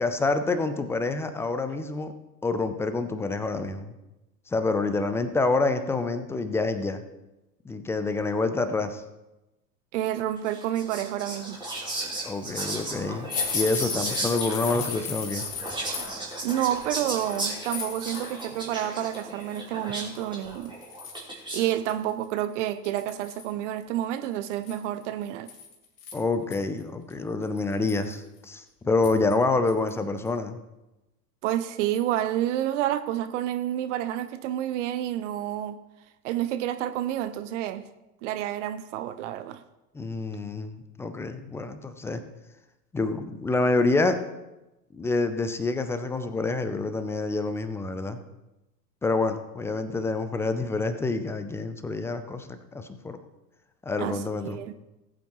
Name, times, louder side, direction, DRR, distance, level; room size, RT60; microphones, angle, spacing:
voice 1, 0.0-2.1 2.4-3.9 4.5-7.0 7.7-9.0 12.2-13.3 13.5-15.4 26.1-30.6 39.9-42.2 42.9-44.2 44.9-48.2 49.0-53.2 53.9-54.6, left 3 dB, 5° left, 9 dB, 0.4 m, -27 dB
voice 2, 9.9-11.6 16.4-20.7 21.5-25.5 31.4-35.8 36.2-37.9 38.2-39.6 54.0-54.7, right 12 dB, 50° right, 11 dB, 0.7 m, -29 dB
Whispering, 10.4-21.8, right 2 dB, 10° right, 3.6 m, -35 dB
sound 1, 13.3-18.7 19.0-19.6 20.2-20.3 20.6-21.4 21.9-22.0 22.2-22.3 22.8-23.5 24.5-26.6 27.1-27.2 27.6-28.1 29.0-29.3 29.7-29.9 30.3-30.4, left 6 dB, 65° left, 2.4 m, -35 dB
19.0 x 8.4 x 3.0 m, 0.99 s
figure-of-eight pair, 90°, 48 cm